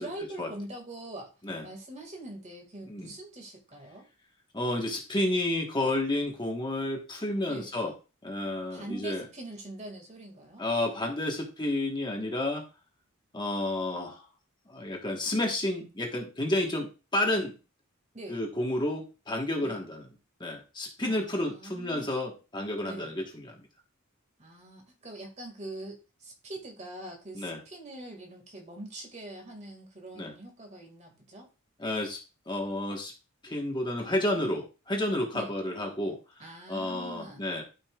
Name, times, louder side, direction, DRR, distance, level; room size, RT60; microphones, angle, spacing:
voice 1, 0.0-1.3 1.6-4.1 7.5-7.7 8.7-10.6 18.1-18.4 19.6-19.8 21.0-22.1 22.8-23.2 24.4-31.5 35.3-35.6 36.4-37.5, right 1 dB, 30° right, 2 dB, 2.0 m, -43 dB
voice 2, 4.5-7.9 8.2-9.2 10.6-12.6 13.3-14.2 14.7-17.6 18.3-20.0 20.4-23.5 27.3-27.6 30.2-30.3 31.8-32.2 32.5-33.1 33.4-36.2 36.7-37.6, left 1 dB, 20° left, 1 dB, 1.3 m, -31 dB
12.0 x 5.5 x 2.4 m, 0.30 s
head